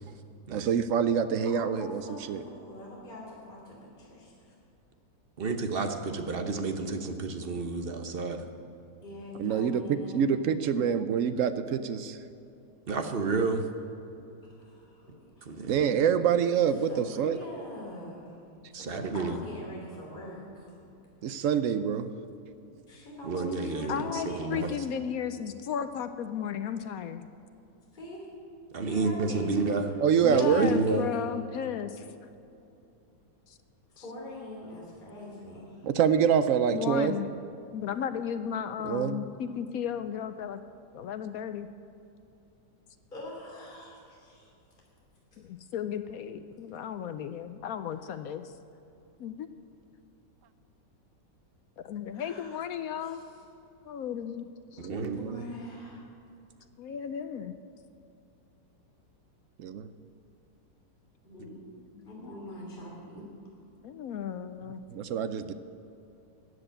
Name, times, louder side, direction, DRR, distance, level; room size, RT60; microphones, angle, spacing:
voice 1, 0.5-2.4 9.4-12.2 15.7-17.4 21.2-22.1 30.0-30.7 35.8-37.1 38.8-39.2 54.8-55.4 59.6-59.9 64.9-65.5, right 7 dB, 70° right, 11 dB, 0.7 m, -26 dB
voice 2, 1.4-4.5 9.0-10.3 14.6-15.1 15.4-15.7 16.9-18.4 18.7-20.7 22.9-24.7 27.9-28.3 28.8-29.5 30.3-30.8 33.9-35.9 43.1-44.5 52.1-52.6 53.0-53.2 55.1-56.0 61.2-61.6 62.0-63.3, left 1 dB, 25° left, -4 dB, 3.2 m, -43 dB
voice 3, 5.4-8.4 12.9-13.7 15.4-15.8 18.7-19.4 23.2-24.7 28.7-29.9 30.3-31.0 54.8-55.2, right 3 dB, 40° right, 6 dB, 0.9 m, -30 dB
voice 4, 23.9-27.2 30.2-32.1 33.5-33.6 36.7-37.3 37.7-40.6 40.9-41.7 45.4-48.5 49.2-49.5 51.8-53.2 53.9-55.2 56.8-57.5 62.0-62.3 63.8-64.8, left 8 dB, 70° left, 10 dB, 0.9 m, -35 dB
14.0 x 8.0 x 8.8 m, 2.8 s
omnidirectional pair, 1.9 m